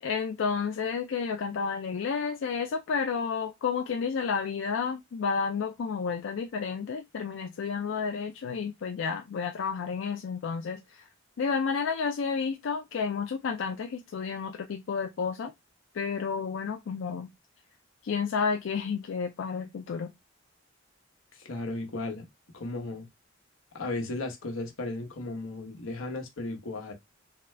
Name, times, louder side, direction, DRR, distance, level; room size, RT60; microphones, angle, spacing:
voice 1, 0.0-11.1 11.4-15.5 15.9-17.3 18.0-20.1, left 5 dB, 65° left, 0.4 m, -31 dB
voice 2, 21.3-22.3 22.5-23.1 23.7-26.9, left 2 dB, 90° left, 1.0 m, -35 dB
3.8 x 2.2 x 3.2 m
head